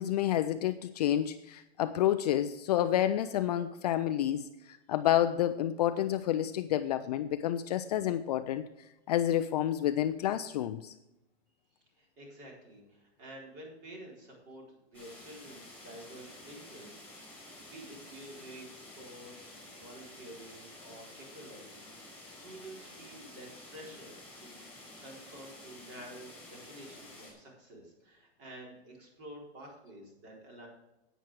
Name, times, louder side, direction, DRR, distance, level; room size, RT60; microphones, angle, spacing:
voice 1, 0.0-8.7 9.1-10.9, left 12 dB, 40° left, 10 dB, 0.4 m, -29 dB
voice 2, 11.9-17.4 17.7-24.6 25.0-30.7, right 1 dB, 30° right, -1 dB, 4.2 m, -50 dB
sound 1, 14.9-27.3, left 1 dB, 5° left, 4.4 m, -51 dB
10.5 x 9.1 x 4.7 m, 0.93 s
supercardioid pair, 160°, 33 cm